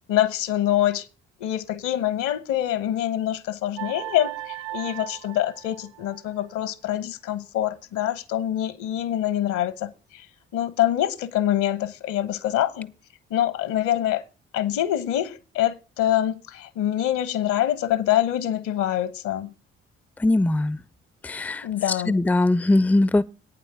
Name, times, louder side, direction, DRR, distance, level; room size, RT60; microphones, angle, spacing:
voice 1, 0.1-1.1 1.4-10.2 10.5-12.9 13.3-14.2 14.5-19.5 21.6-22.2, left 12 dB, 65° left, 1.2 m, -25 dB
sound 1, 3.8-6.4, right 15 dB, 60° right, 0.5 m, -37 dB
voice 2, 20.2-20.8 21.2-23.2, left 2 dB, 5° left, 0.5 m, -21 dB
9.1 x 7.4 x 6.9 m
figure-of-eight pair, 45°, 32 cm